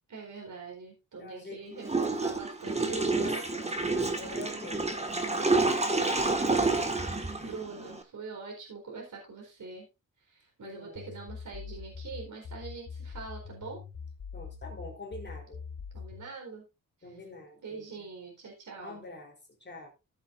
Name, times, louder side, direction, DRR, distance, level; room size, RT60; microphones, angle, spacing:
voice 1, 0.1-3.5 3.8-4.7 5.2-6.3 6.6-9.8 10.2-13.8 15.9-16.7 17.6-19.0, right 4 dB, 65° right, 4.4 m, -44 dB
voice 2, 1.2-1.8 2.9-5.1 7.3-7.6 7.8-7.9 10.6-11.0 14.3-15.6 17.0-18.0 18.8-19.9, left 2 dB, 30° left, 3.9 m, -46 dB
Water / Toilet flush, 1.8-8.0, right 3 dB, 20° right, 1.8 m, -29 dB
sound 1, 10.9-16.3, left 6 dB, 75° left, 4.7 m, -43 dB
15.5 x 8.1 x 2.6 m
cardioid pair, 95°, 33 cm